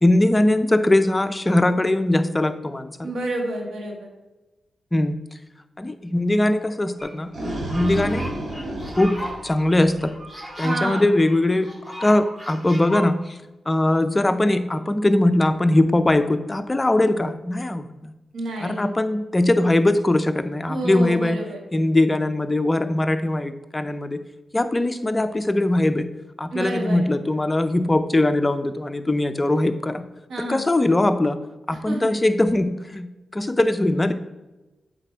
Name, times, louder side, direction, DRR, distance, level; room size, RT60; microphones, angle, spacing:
voice 1, 0.0-3.1 4.9-5.2 5.8-7.3 7.7-8.3 9.0-9.2 9.4-10.1 10.6-11.7 12.0-13.4 13.7-18.1 18.6-21.4 21.7-24.2 24.5-26.1 26.4-30.0 30.5-31.4 31.7-34.1, left 1 dB, 20° left, 9 dB, 0.5 m, -21 dB
voice 2, 3.0-4.1 10.6-11.1 18.3-18.8 20.7-21.6 26.5-27.0 30.3-30.6 31.8-32.1, right 1 dB, 80° right, 1 dB, 1.6 m, -29 dB
sound 1, 7.0-7.1 7.4-13.0, equal, 10° right, 2.2 m, -36 dB
sound 2, 7.0-10.2, right 1 dB, 50° right, 1.9 m, -31 dB
8.0 x 4.1 x 4.5 m, 1.1 s
cardioid pair, 85°, 0 cm